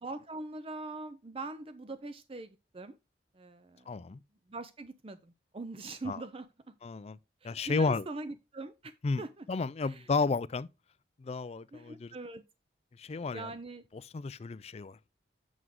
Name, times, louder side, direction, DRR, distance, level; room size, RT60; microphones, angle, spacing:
voice 1, 0.0-3.0 3.3-3.9 4.5-6.5 7.4-9.5 9.8-10.1 11.7-12.4 13.3-13.8, right 2 dB, 30° right, 0.5 m, -42 dB
voice 2, 3.9-4.2 6.0-6.2 6.8-7.2 7.4-8.1 9.0-9.2 9.5-10.7 11.2-12.1 13.0-13.5 14.1-15.0, left 4 dB, 35° left, 0.4 m, -32 dB
8.0 x 6.2 x 3.6 m
head